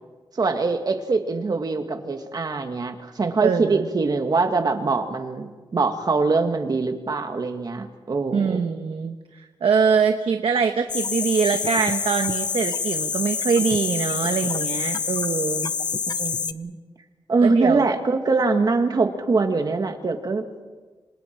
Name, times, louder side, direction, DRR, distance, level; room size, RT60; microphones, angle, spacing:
voice 1, 0.3-8.6 16.1-16.7 17.3-20.4, right 3 dB, 45° right, 5 dB, 1.9 m, -23 dB
voice 2, 3.4-3.8 8.3-15.7 17.4-17.8, right 6 dB, 85° right, 6 dB, 1.1 m, -23 dB
sound 1, 10.9-16.5, left 5 dB, 50° left, 0.6 m, -27 dB
27.5 x 26.0 x 4.6 m, 1.3 s
wide cardioid pair, 160°, 9 cm